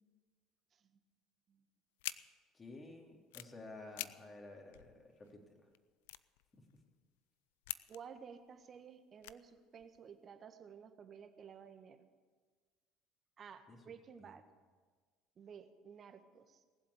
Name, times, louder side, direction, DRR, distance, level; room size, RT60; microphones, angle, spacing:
sound 1, 2.0-2.2 3.1-3.5 3.9-4.1 4.4-4.5 4.7-5.3 5.7-5.8 6.0-7.0 7.6-8.2 8.6-8.8 9.2-10.0, left 17 dB, 85° left, 0.4 m, -45 dB
voice 1, 2.5-5.7 6.5-6.8 13.7-13.8 14.2-14.3, left 2 dB, 30° left, 1 dB, 3.4 m, -53 dB
voice 2, 7.9-12.0 13.4-14.4 15.4-16.6, right 7 dB, 45° right, 8 dB, 1.5 m, -54 dB
19.0 x 7.8 x 8.3 m, 1.5 s
supercardioid pair, 80°, 0 cm